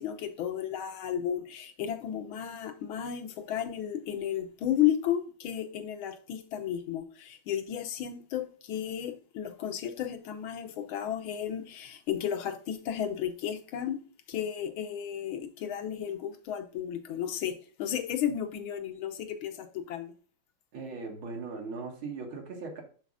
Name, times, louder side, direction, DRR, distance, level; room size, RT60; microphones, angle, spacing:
voice 1, 0.0-14.0 14.3-20.1, left 10 dB, 90° left, 1.7 m, -33 dB
voice 2, 20.7-22.8, right 4 dB, 85° right, 2.4 m, -39 dB
11.5 x 4.1 x 2.4 m
omnidirectional pair, 2.2 m